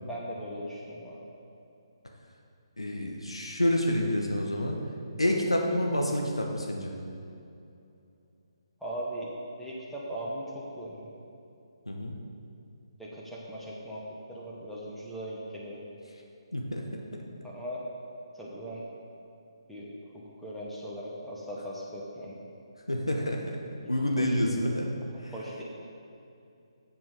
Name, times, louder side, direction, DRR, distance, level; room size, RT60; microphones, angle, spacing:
voice 1, 0.1-1.2 8.8-9.3 9.6-11.1 13.0-14.0 14.3-15.8 17.4-17.8 18.4-18.8 19.7-22.4 23.8-24.4 25.3-25.6, equal, ahead, -7 dB, 1.2 m, -39 dB
voice 2, 2.8-4.8 5.2-7.0 11.9-12.1 16.5-17.0 22.9-23.6 23.9-24.9 25.2-25.3, left 1 dB, 80° left, 1 dB, 1.1 m, -28 dB
7.6 x 7.5 x 6.6 m, 2.6 s
figure-of-eight pair, 140°, 3 cm